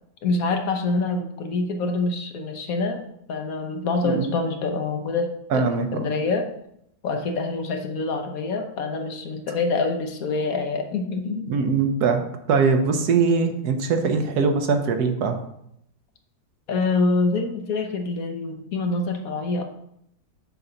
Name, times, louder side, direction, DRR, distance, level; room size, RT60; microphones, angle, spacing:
voice 1, 0.2-3.0 3.3-5.7 5.9-6.5 7.0-11.5 16.7-19.6, left 3 dB, 65° left, 4 dB, 1.3 m, -26 dB
voice 2, 5.5-6.1 11.5-15.4, right 5 dB, 75° right, 6 dB, 1.4 m, -22 dB
6.8 x 3.9 x 5.6 m, 0.75 s
omnidirectional pair, 1.7 m